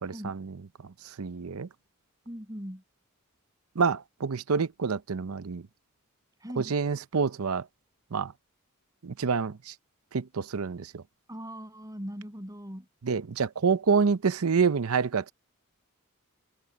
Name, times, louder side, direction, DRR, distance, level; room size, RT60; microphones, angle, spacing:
voice 1, 0.0-0.6 1.2-1.7 3.8-5.6 6.6-7.6 8.1-8.3 9.0-9.7 10.1-11.0 13.0-15.3, right 5 dB, 75° right, 0.6 m, -27 dB
voice 2, 2.3-2.8 6.4-6.8 11.3-12.9, equal, 15° right, 7.9 m, -40 dB
head